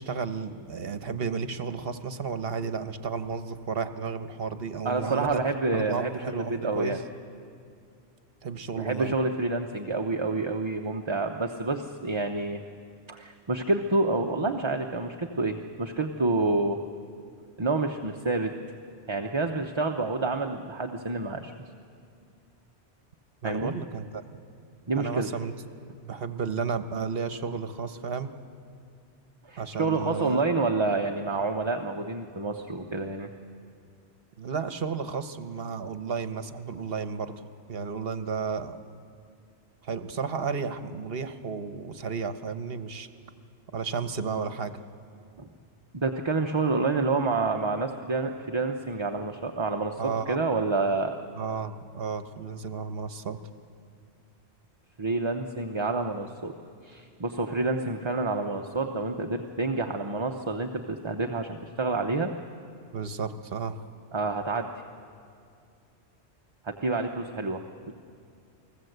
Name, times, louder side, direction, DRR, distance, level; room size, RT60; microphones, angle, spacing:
voice 1, 0.0-5.4 5.7-7.0 8.4-9.1 23.4-24.2 25.0-25.5 26.0-28.3 29.6-30.4 34.4-37.3 37.7-38.8 39.8-43.1 43.7-44.8 50.0-50.4 51.4-53.4 62.9-63.8, right 5 dB, 60° right, 10 dB, 1.2 m, -33 dB
voice 2, 4.8-7.0 8.8-12.6 13.1-16.8 17.6-18.5 19.1-21.5 23.4-23.7 24.9-25.3 29.4-33.3 45.4-45.5 45.9-51.2 55.0-56.5 56.8-62.3 64.1-64.7 66.6-67.9, right 3 dB, 30° right, 3 dB, 0.8 m, -28 dB
29.5 x 20.0 x 8.0 m, 2.4 s
omnidirectional pair, 1.2 m